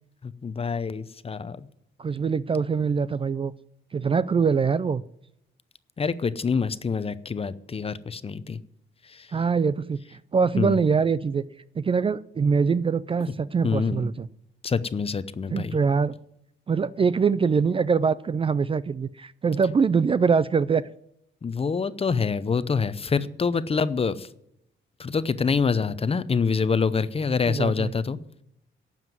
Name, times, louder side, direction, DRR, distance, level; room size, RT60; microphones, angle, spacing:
voice 1, 0.2-1.6 6.0-8.6 10.6-10.8 13.6-14.0 14.6-15.8 21.4-24.3 25.0-28.2, left 5 dB, 30° left, 15 dB, 0.7 m, -26 dB
voice 2, 2.0-3.5 3.9-5.0 9.3-10.0 10.3-11.4 11.8-14.3 15.5-16.1 16.7-20.8 27.5-27.9, right 5 dB, 25° right, 17 dB, 0.4 m, -23 dB
12.0 x 7.4 x 9.3 m, 0.77 s
cardioid pair, 90°, 20 cm